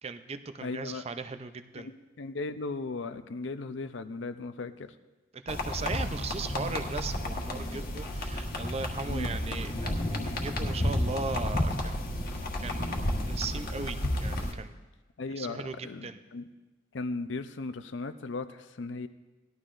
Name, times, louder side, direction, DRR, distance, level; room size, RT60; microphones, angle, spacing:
voice 1, 0.0-1.9 5.3-12.1 12.6-14.7 15.4-16.2, right 4 dB, 30° right, 9 dB, 0.5 m, -38 dB
voice 2, 0.6-1.0 1.8-4.9 9.1-9.3 15.2-16.5 16.9-19.1, left 3 dB, 65° left, 10 dB, 0.6 m, -37 dB
sound 1, 5.5-14.5, left 1 dB, 50° left, 1.4 m, -31 dB
18.5 x 12.0 x 2.5 m, 1.2 s
head